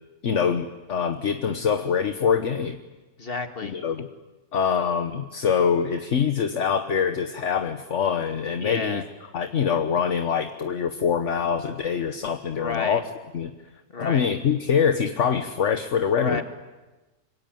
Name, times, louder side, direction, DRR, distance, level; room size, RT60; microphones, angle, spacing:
voice 1, 0.2-2.8 3.6-4.1 4.5-9.0 9.3-13.0 13.3-13.5 14.0-16.4, left 7 dB, 60° left, 8 dB, 1.4 m, -24 dB
voice 2, 3.2-3.8 8.6-9.0 12.6-13.0 13.9-14.3 16.1-16.4, left 3 dB, 45° left, 7 dB, 2.3 m, -31 dB
26.5 x 24.0 x 9.2 m, 1.1 s
omnidirectional pair, 1.4 m